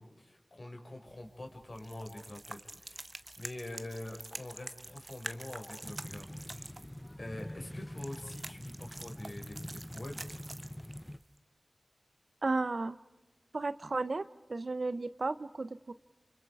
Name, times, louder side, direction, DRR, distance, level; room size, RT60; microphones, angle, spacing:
voice 1, 0.0-6.7 7.2-10.2, left 1 dB, 55° left, 2 dB, 5.3 m, -45 dB
sound 1, 1.1-11.4, right 2 dB, 45° right, 1.0 m, -47 dB
sound 2, 5.8-11.2, left 1 dB, 15° left, 0.8 m, -45 dB
voice 2, 12.4-13.0 13.5-15.9, right 3 dB, 70° right, 14 dB, 0.9 m, -34 dB
29.0 x 28.5 x 4.9 m, 1.0 s
wide cardioid pair, 45°, 0 cm